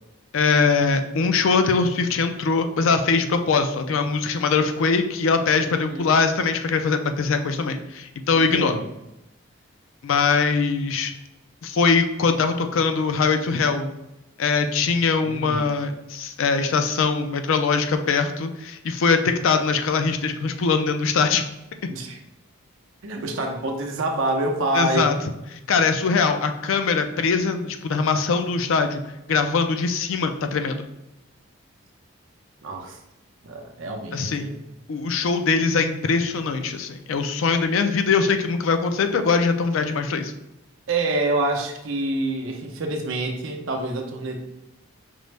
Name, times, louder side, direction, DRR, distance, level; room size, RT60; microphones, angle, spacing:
voice 1, 0.3-8.7 10.0-11.1 11.6-13.9 14.4-21.4 24.7-25.2 25.7-29.0 29.3-30.8 34.1-34.5 34.9-40.3, left 4 dB, 70° left, 7 dB, 0.4 m, -22 dB
voice 2, 5.7-6.1 8.3-8.9 15.2-15.7 21.9-22.2 23.0-25.2 32.6-33.0 33.4-34.6 40.9-44.4, right 2 dB, 70° right, 3 dB, 0.6 m, -27 dB
5.2 x 2.0 x 3.2 m, 0.90 s
head